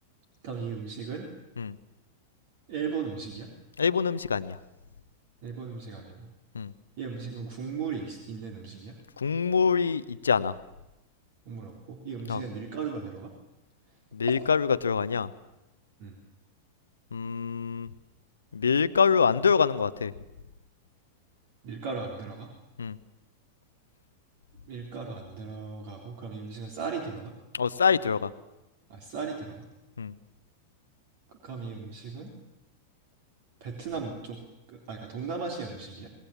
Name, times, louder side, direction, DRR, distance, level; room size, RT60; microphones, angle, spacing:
voice 1, 0.4-1.3 2.7-3.5 5.4-6.3 7.0-8.9 11.5-13.3 16.0-16.2 21.6-22.5 24.7-27.3 28.9-29.7 31.3-32.3 33.6-34.4 34.7-36.1, right 5 dB, 50° right, 1 dB, 3.6 m, -37 dB
voice 2, 3.8-4.6 6.5-6.7 9.2-10.5 12.3-12.4 14.1-15.3 17.1-17.9 18.5-20.1 22.8-23.0 27.5-28.3 30.0-30.1, left 6 dB, 70° left, 14 dB, 0.8 m, -25 dB
26.0 x 20.5 x 7.2 m, 0.97 s
figure-of-eight pair, 90°, 0 cm